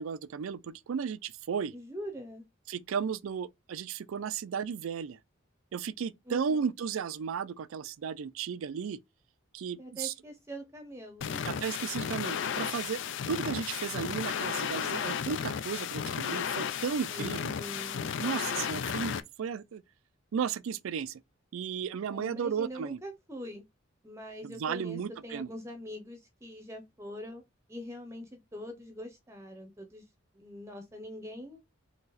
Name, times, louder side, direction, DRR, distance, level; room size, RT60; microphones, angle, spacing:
voice 1, 0.0-1.7 2.7-5.2 5.7-9.0 9.5-10.1 11.4-13.0 13.3-17.5 18.2-19.8 20.3-21.2 21.5-23.0 24.4-25.5, right 6 dB, 75° right, 0.4 m, -34 dB
voice 2, 1.7-2.4 6.3-6.7 9.8-11.6 17.0-18.1 22.0-23.6 24.0-27.4 27.7-30.0 30.3-31.6, equal, 15° right, 0.7 m, -43 dB
sound 1, 11.2-19.2, left 7 dB, 60° left, 0.4 m, -34 dB
4.0 x 2.9 x 3.9 m
head